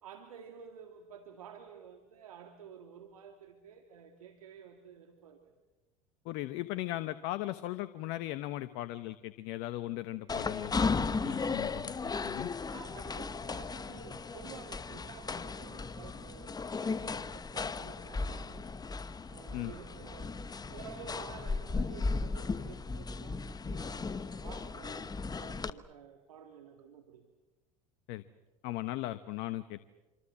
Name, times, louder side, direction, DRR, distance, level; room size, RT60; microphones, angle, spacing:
voice 1, 0.0-5.5 12.7-18.7 19.3-25.1 25.4-27.3, right 7 dB, 85° right, 6 dB, 2.2 m, -51 dB
voice 2, 6.2-12.5 19.5-19.7 28.1-28.2 28.6-29.8, left 16 dB, 65° left, 12 dB, 1.1 m, -38 dB
sound 1, 10.3-25.7, left 4 dB, 20° left, 1.2 m, -36 dB
26.5 x 26.0 x 7.4 m, 1.1 s
hypercardioid pair, 75°, 18 cm